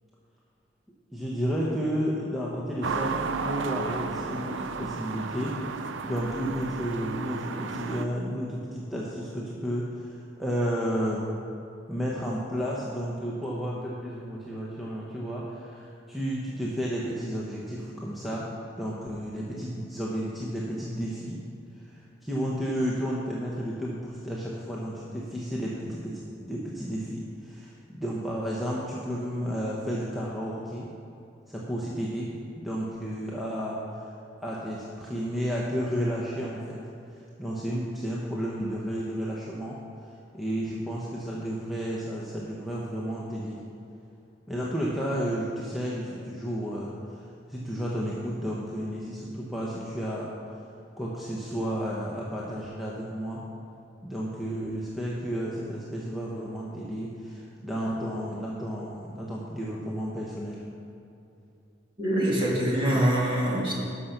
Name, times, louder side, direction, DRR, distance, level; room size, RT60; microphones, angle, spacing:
voice 1, 1.1-11.3 11.9-18.5 18.8-21.4 21.8-30.9 31.5-34.1 34.4-36.8 37.1-39.8 40.3-43.6 44.5-50.3 51.0-53.4 54.0-60.7, equal, ahead, -5 dB, 1.0 m, -32 dB
sound 1, 2.8-8.1, right 4 dB, 75° right, 0.6 m, -33 dB
voice 2, 62.0-63.7, right 1 dB, 25° right, -4 dB, 2.2 m, -24 dB
12.0 x 5.7 x 6.6 m, 2.7 s
head